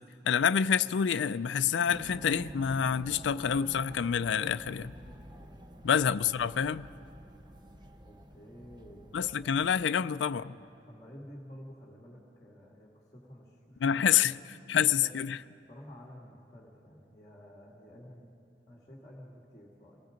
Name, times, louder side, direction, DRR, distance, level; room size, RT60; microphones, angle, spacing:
voice 1, 0.3-4.9 5.8-6.9 9.1-10.5 13.8-14.3 14.7-15.4, left 8 dB, 80° left, 0.4 m, -27 dB
sound 1, 1.9-9.8, equal, 25° right, 0.9 m, -49 dB
voice 2, 8.0-9.1 10.4-14.4 14.7-15.1 15.7-18.3 18.7-20.0, equal, 20° left, 2.2 m, -51 dB
28.0 x 19.0 x 5.1 m
head